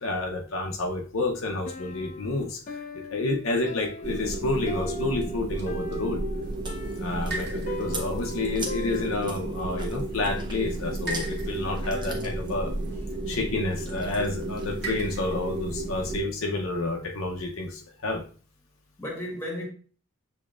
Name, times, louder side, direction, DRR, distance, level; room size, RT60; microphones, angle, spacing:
voice 1, 0.0-2.8 3.1-6.2 7.0-12.7 13.3-18.2, left 2 dB, 70° left, 0.7 m, -29 dB
Piano, 1.7-9.5, left 3 dB, 35° left, 0.3 m, -41 dB
voice 2, 1.8-2.4 9.8-9.9 11.8-12.5 12.9-13.2 19.0-19.7, left 1 dB, 10° left, 1.2 m, -38 dB
sound 1, 4.0-16.2, right 2 dB, 50° right, 1.2 m, -32 dB
Chewing mastication, 6.4-15.3, right 3 dB, 20° right, 0.7 m, -43 dB
7.0 x 2.8 x 2.4 m
head